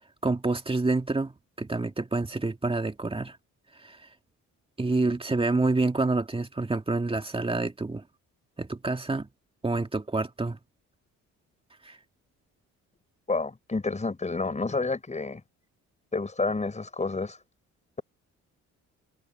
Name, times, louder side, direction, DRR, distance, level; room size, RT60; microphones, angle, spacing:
voice 1, 0.2-3.4 3.8-4.0 4.8-8.0 8.6-9.3 9.6-10.6 11.8-12.0, right 3 dB, 20° right, 2.2 m, -27 dB
voice 2, 13.3-15.4 16.1-17.4, left 3 dB, 25° left, 6.0 m, -29 dB
cardioid pair, 90°, 30 cm